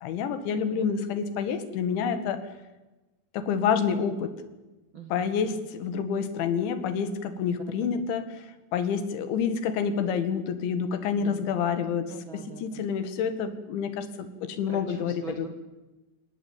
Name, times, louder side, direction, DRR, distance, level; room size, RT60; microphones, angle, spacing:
voice 1, 0.0-2.4 3.3-4.3 5.1-8.3 8.7-12.1 12.3-15.1, left 6 dB, 85° left, 11 dB, 4.3 m, -28 dB
voice 2, 4.9-5.7 7.7-8.1 11.2-11.8 12.1-12.8 14.7-15.5, right 5 dB, 60° right, 5 dB, 1.3 m, -44 dB
29.0 x 17.5 x 8.9 m, 1.1 s
omnidirectional pair, 5.2 m